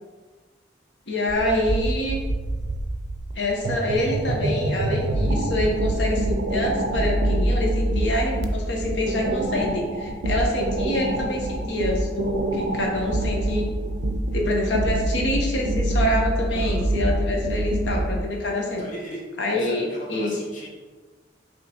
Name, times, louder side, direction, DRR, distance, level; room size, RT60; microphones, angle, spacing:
voice 1, 1.1-2.2 3.3-13.7 14.3-18.8 19.4-20.3, left 1 dB, 75° left, 0 dB, 0.9 m, -26 dB
sound 1, 1.3-18.3, right 1 dB, 70° right, 0.4 m, -26 dB
voice 2, 16.5-16.8 18.8-19.2 19.5-20.7, equal, 45° left, -3 dB, 1.1 m, -39 dB
5.4 x 2.9 x 2.9 m, 1.4 s
head